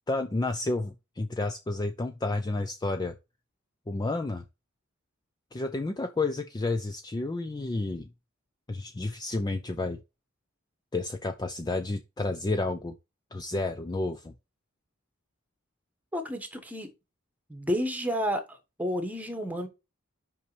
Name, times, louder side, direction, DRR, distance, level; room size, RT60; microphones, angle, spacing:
voice 1, 0.1-3.1 3.9-4.4 5.5-8.1 8.7-10.0 10.9-12.9 13.3-14.3, left 2 dB, 20° left, 0.4 m, -31 dB
voice 2, 16.1-16.9 17.5-19.7, equal, 5° right, 1.3 m, -31 dB
5.5 x 5.4 x 3.3 m
head